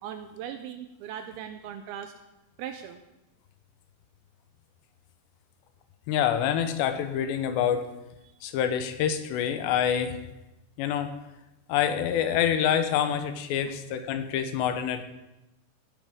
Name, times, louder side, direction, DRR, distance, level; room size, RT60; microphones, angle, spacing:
voice 1, 0.0-2.1 2.6-3.0 13.7-13.8, right 9 dB, 85° right, 8 dB, 2.2 m, -39 dB
voice 2, 6.1-7.9 8.4-10.2 10.8-11.2 11.7-15.0, left 9 dB, 90° left, 8 dB, 3.1 m, -26 dB
16.5 x 10.0 x 3.6 m, 0.94 s
omnidirectional pair, 4.9 m